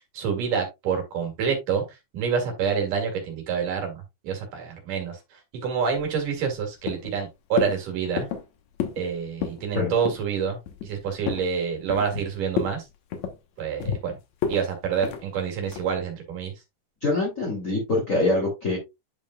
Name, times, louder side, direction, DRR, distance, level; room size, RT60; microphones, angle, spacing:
voice 1, 0.1-1.8 2.1-8.3 9.0-12.8 13.6-14.2 14.5-16.5, right 6 dB, 75° right, 3 dB, 3.8 m, -27 dB
sound 1, 6.0-6.6 6.9-7.2 7.6-7.8 8.2-8.5 8.8-9.1 9.3-9.6 10.0-10.3 10.7-11.5 11.9-12.2 12.5-12.8 13.1-14.0 14.4-14.6 15.0-15.2 15.7-16.0, left 7 dB, 65° left, 2.2 m, -31 dB
voice 2, 17.0-18.8, left 2 dB, 25° left, -3 dB, 2.7 m, -24 dB
10.5 x 5.2 x 2.3 m, 0.21 s
omnidirectional pair, 3.8 m